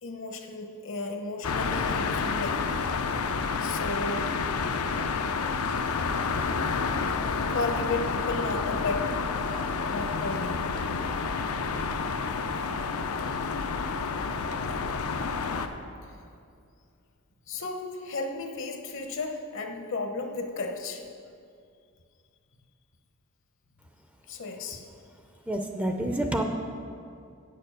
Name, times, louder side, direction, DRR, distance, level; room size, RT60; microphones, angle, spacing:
voice 1, 0.0-2.7 3.6-4.3 7.5-9.2 9.9-10.6 14.6-14.8 17.5-21.0 24.3-24.8, left 3 dB, 60° left, 4 dB, 0.9 m, -34 dB
sound 1, 1.4-15.7, left 4 dB, 75° left, 0.6 m, -29 dB
voice 2, 25.5-26.4, right 1 dB, 5° right, 3 dB, 0.5 m, -28 dB
8.4 x 6.8 x 6.5 m, 2.4 s
head